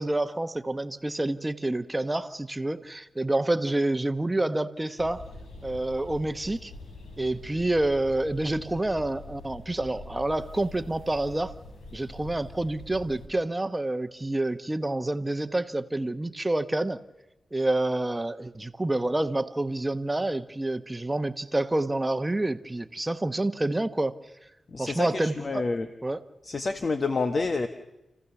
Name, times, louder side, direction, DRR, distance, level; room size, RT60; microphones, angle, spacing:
voice 1, 0.0-5.3 5.6-6.7 7.2-11.5 11.9-17.0 17.5-24.1 24.8-25.6 26.0-26.2, right 2 dB, 20° right, 10 dB, 1.1 m, -28 dB
sound 1, 5.0-13.3, left 2 dB, 90° left, 3.4 m, -45 dB
voice 2, 24.7-25.9 26.4-27.7, left 3 dB, 50° left, 8 dB, 1.2 m, -28 dB
30.0 x 15.0 x 7.1 m, 0.95 s
cardioid pair, 60°, 0 cm